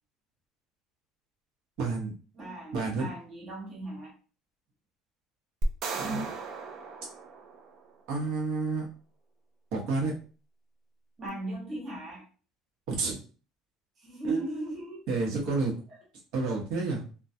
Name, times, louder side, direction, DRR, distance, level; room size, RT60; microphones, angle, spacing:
voice 1, 1.8-2.1 2.7-3.1 5.9-6.3 8.1-8.9 9.7-10.1 12.9-13.2 14.2-14.5 15.1-15.7 16.3-17.0, right 3 dB, 60° right, -2 dB, 0.9 m, -29 dB
voice 2, 2.3-4.1 11.2-12.3 14.0-15.0, right 1 dB, 25° right, -4 dB, 0.8 m, -38 dB
sound 1, 5.6-8.0, right 2 dB, 45° right, 0.4 m, -35 dB
2.2 x 2.2 x 2.6 m, 0.38 s
cardioid pair, 160°, 0 cm